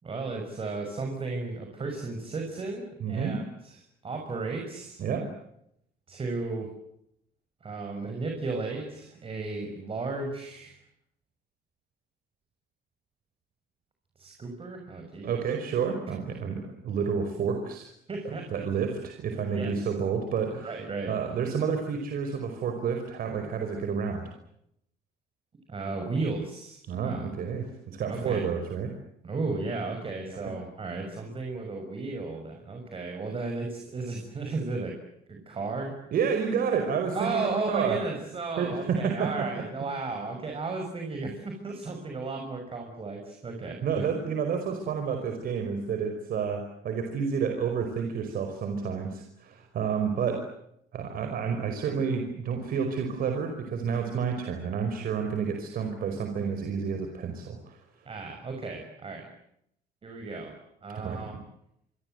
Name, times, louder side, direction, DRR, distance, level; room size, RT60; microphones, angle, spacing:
voice 1, 0.0-5.0 6.1-6.7 7.6-10.7 14.2-15.3 18.1-18.8 19.3-19.9 20.6-21.4 25.7-27.3 28.1-28.4 29.2-35.0 35.3-36.0 37.1-44.1 58.0-59.3 60.0-61.3, right 3 dB, 35° right, 3 dB, 6.4 m, -34 dB
voice 2, 3.0-3.4 5.0-5.3 15.2-17.9 18.2-20.7 21.0-24.3 26.9-28.9 30.3-30.5 36.1-38.0 38.6-39.6 43.8-50.5 50.9-57.8 61.0-61.2, right 6 dB, 60° right, 5 dB, 5.1 m, -30 dB
26.5 x 25.5 x 8.0 m, 0.76 s
cardioid pair, 110°, 17 cm